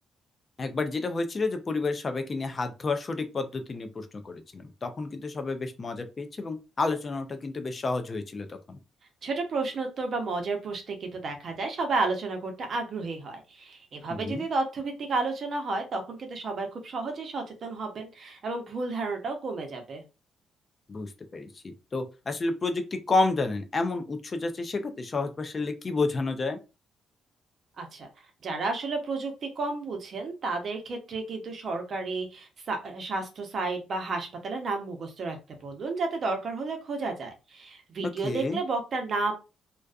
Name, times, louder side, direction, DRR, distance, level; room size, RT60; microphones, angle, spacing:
voice 1, 0.6-8.8 14.1-14.5 20.9-26.6 38.2-38.6, left 3 dB, 35° left, 7 dB, 0.4 m, -30 dB
voice 2, 9.2-20.0 27.8-28.1 28.4-35.4 35.6-39.3, right 3 dB, 50° right, 4 dB, 0.7 m, -32 dB
2.4 x 2.3 x 2.3 m, 0.29 s
cardioid pair, 90°, 0 cm